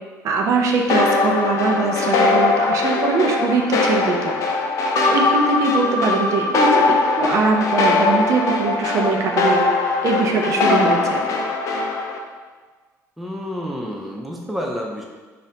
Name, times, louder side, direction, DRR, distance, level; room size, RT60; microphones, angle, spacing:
voice 1, 0.2-4.3 5.1-9.6 10.0-11.2, right 4 dB, 55° right, 1 dB, 0.6 m, -21 dB
sound 1, 0.9-12.2, left 3 dB, 60° left, 0.5 m, -20 dB
voice 2, 13.2-15.0, equal, ahead, -1 dB, 0.4 m, -29 dB
5.1 x 2.5 x 2.7 m, 1.4 s
cardioid pair, 135°, 6 cm